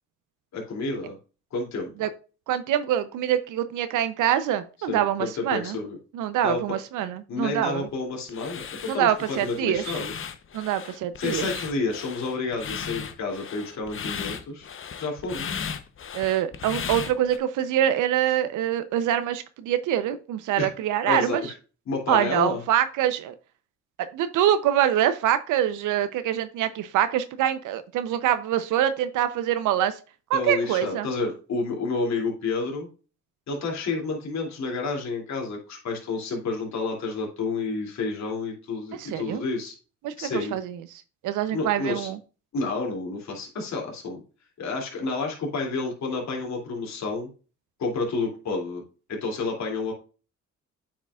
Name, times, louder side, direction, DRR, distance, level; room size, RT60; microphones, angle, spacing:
voice 1, 0.5-1.2 1.5-1.9 4.9-6.0 6.4-6.6 7.3-10.2 11.2-14.7 15.0-15.6 20.6-20.7 21.0-21.5 21.9-22.6 30.3-32.9 33.5-39.7 40.2-40.6 41.5-42.1 42.5-44.2 44.6-47.3 47.8-48.8 49.1-49.9, left 3 dB, 65° left, -1 dB, 2.8 m, -30 dB
voice 2, 2.5-5.8 6.1-7.9 8.9-10.0 10.5-11.5 16.1-21.4 22.1-23.3 24.1-29.9 30.3-31.1 39.0-39.4 40.0-40.7 41.2-42.2, right 11 dB, 90° right, 11 dB, 0.7 m, -25 dB
sound 1, 8.3-17.4, left 7 dB, 45° left, 0.9 m, -36 dB
8.7 x 5.9 x 2.4 m, 0.34 s
cardioid pair, 90°, 30 cm